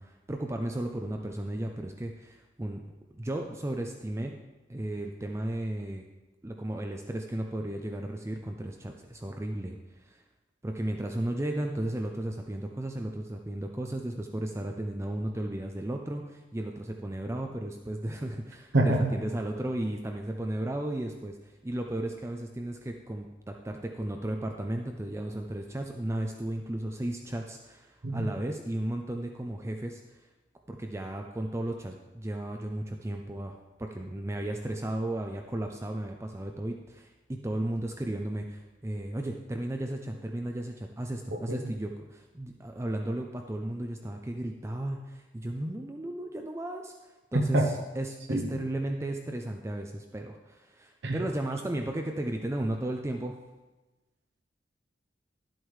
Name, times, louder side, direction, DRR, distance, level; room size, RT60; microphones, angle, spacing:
voice 1, 0.0-2.8 3.2-4.3 4.7-6.0 6.4-10.2 10.6-30.0 30.7-46.9 47.3-53.4, right 1 dB, 15° right, 3 dB, 0.5 m, -34 dB
voice 2, 18.7-19.1 28.0-28.2 41.3-41.7 47.3-47.7 48.3-48.6 51.0-51.2, right 1 dB, 70° right, 2 dB, 0.9 m, -26 dB
12.0 x 7.9 x 3.2 m, 1.1 s
head